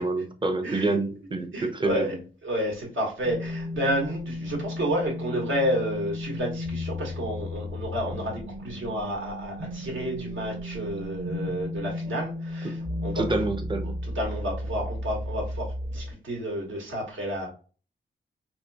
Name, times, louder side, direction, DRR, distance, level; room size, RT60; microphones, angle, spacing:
voice 1, 0.0-2.1 12.6-12.7 13.1-13.9, right 2 dB, 25° right, 0.6 m, -27 dB
voice 2, 0.6-1.0 1.3-2.1 2.4-13.4 14.0-17.5, equal, 75° right, 1.6 m, -30 dB
sound 1, 3.2-16.1, left 1 dB, 45° right, 1.0 m, -34 dB
4.2 x 3.0 x 2.3 m
wide cardioid pair, 125°, 20 cm